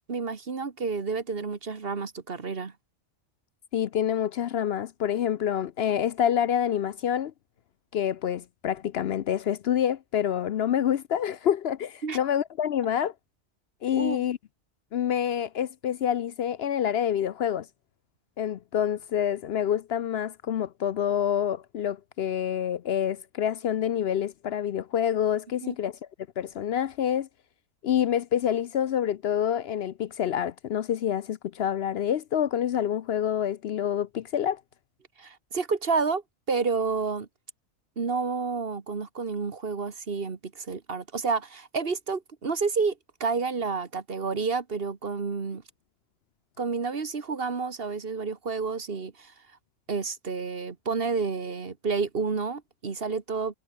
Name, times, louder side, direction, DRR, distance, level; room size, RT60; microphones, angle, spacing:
voice 1, 0.1-2.7 12.0-12.2 13.9-14.3 25.6-25.7 35.2-36.2 36.5-37.3 38.0-45.6 46.6-49.3 49.9-53.5, right 4 dB, 50° right, 1.7 m, -30 dB
voice 2, 3.7-7.3 7.9-13.1 13.8-14.4 14.9-17.7 18.4-26.0 26.4-27.3 27.8-34.6, left 9 dB, 65° left, 0.8 m, -27 dB
omnidirectional pair, 1.2 m